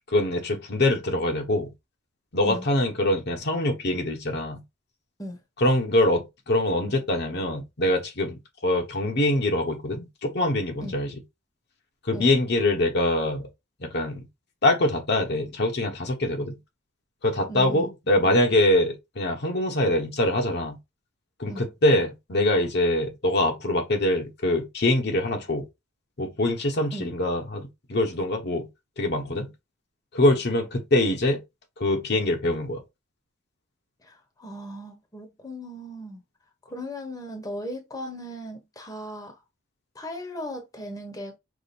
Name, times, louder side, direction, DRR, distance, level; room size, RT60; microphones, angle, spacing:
voice 1, 0.1-1.7 2.3-4.6 5.6-11.1 12.1-13.4 13.8-14.3 14.6-16.6 17.2-20.8 21.4-25.7 26.2-28.7 29.0-29.5 30.1-31.4 31.8-32.8, left 1 dB, 55° left, 1.1 m, -24 dB
voice 2, 17.5-18.4 21.5-21.7 26.9-27.1 34.0-36.2 36.6-39.4 39.9-41.4, equal, 20° left, 1.0 m, -37 dB
5.0 x 2.1 x 4.2 m
head